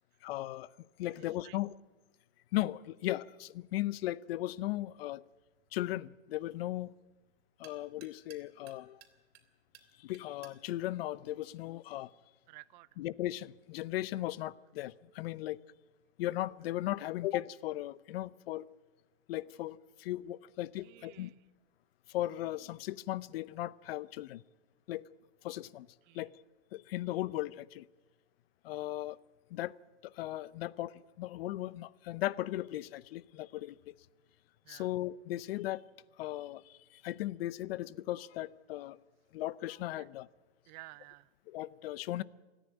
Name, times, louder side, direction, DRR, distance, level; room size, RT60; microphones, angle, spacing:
voice 1, 0.2-0.7 1.0-1.8 2.5-5.2 5.7-6.9 7.6-9.0 10.0-12.1 13.0-15.6 16.2-18.7 19.3-21.3 22.1-24.4 24.9-25.0 25.4-25.9 26.1-26.3 26.7-27.9 28.6-29.2 29.5-29.7 30.0-33.9 34.7-35.9 36.2-39.0 39.3-40.3 41.5-42.2, left 15 dB, 60° left, 20 dB, 0.7 m, -37 dB
voice 2, 1.1-1.6 12.5-12.9 20.8-21.4 26.1-26.3 34.6-34.9 40.0-40.1 40.7-41.3, right 20 dB, 45° right, 19 dB, 0.6 m, -53 dB
sound 1, 4.7-12.2, right 10 dB, 65° right, 3.2 m, -63 dB
27.5 x 10.0 x 9.4 m, 1.2 s
hypercardioid pair, 135°, 33 cm